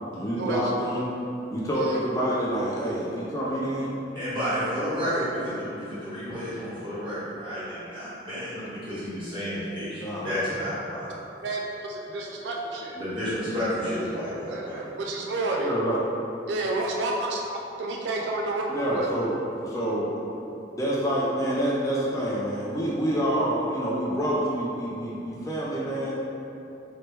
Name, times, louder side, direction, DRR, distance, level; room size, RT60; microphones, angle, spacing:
voice 1, 0.1-1.0 1.5-4.0 10.0-10.4 15.6-16.0 18.7-19.3 19.6-20.1 20.8-26.1, equal, 20° left, -6 dB, 0.4 m, -27 dB
voice 2, 4.1-11.2 12.9-14.9, equal, 30° right, -12 dB, 1.4 m, -31 dB
voice 3, 11.4-13.0 14.5-15.7 16.5-17.4 17.8-19.1, right 2 dB, 80° right, 0 dB, 0.3 m, -30 dB
3.1 x 2.9 x 3.2 m, 2.8 s
head